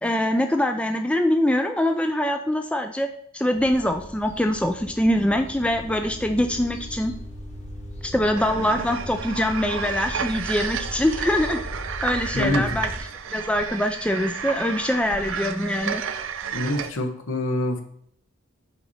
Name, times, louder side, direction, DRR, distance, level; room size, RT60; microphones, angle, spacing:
voice 1, 0.0-3.1 3.3-7.1 8.0-11.6 12.0-12.9 13.3-16.0, left 1 dB, 5° left, 5 dB, 0.3 m, -23 dB
sound 1, 3.5-13.0, equal, 35° left, 1.4 m, -37 dB
sound 2, 8.4-16.9, right 7 dB, 65° right, 0.5 m, -32 dB
voice 2, 12.3-12.8 16.5-17.8, left 1 dB, 65° left, 5 dB, 1.0 m, -25 dB
5.8 x 4.1 x 5.5 m, 0.67 s
head